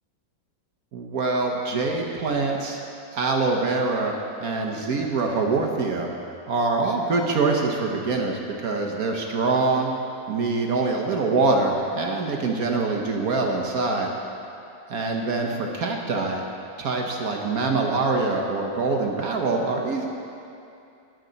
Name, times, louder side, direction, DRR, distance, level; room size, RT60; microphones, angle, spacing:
voice 1, 0.9-2.8 3.1-4.1 4.4-6.1 6.5-9.9 10.3-14.1 14.9-16.4 16.8-20.1, right 3 dB, 60° right, 1 dB, 1.3 m, -24 dB
14.0 x 10.5 x 4.0 m, 2.6 s
omnidirectional pair, 2.0 m